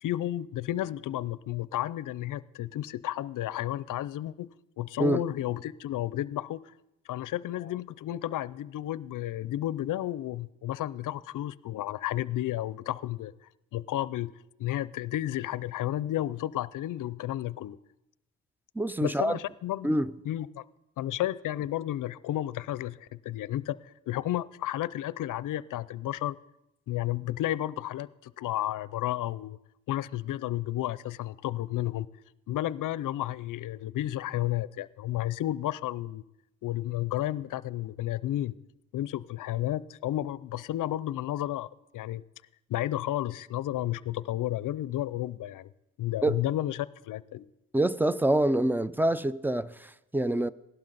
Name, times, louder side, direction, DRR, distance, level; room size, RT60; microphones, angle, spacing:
voice 1, 0.0-4.5 4.8-6.7 7.1-14.3 14.6-17.8 19.0-19.9 20.2-20.7 21.0-26.4 26.9-29.6 29.9-32.1 32.5-36.2 36.6-38.5 38.9-41.7 41.9-42.2 42.7-45.7 46.0-47.4, left 14 dB, 60° left, 0.5 m, -32 dB
voice 2, 18.8-19.4 19.8-20.1 46.2-46.4 47.7-50.5, right 1 dB, 5° right, 0.4 m, -26 dB
17.5 x 12.0 x 4.0 m
supercardioid pair, 70°, 35 cm